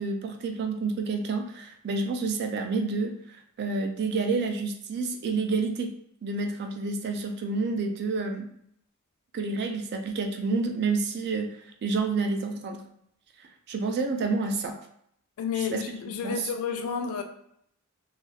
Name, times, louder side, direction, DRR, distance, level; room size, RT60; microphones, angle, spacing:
voice 1, 0.0-5.9 6.2-8.5 9.3-12.8 13.4-14.8 15.6-15.8 16.2-16.5, right 3 dB, 50° right, 0.3 m, -29 dB
voice 2, 15.4-17.2, left 7 dB, 70° left, 0.3 m, -31 dB
2.4 x 2.3 x 3.2 m
head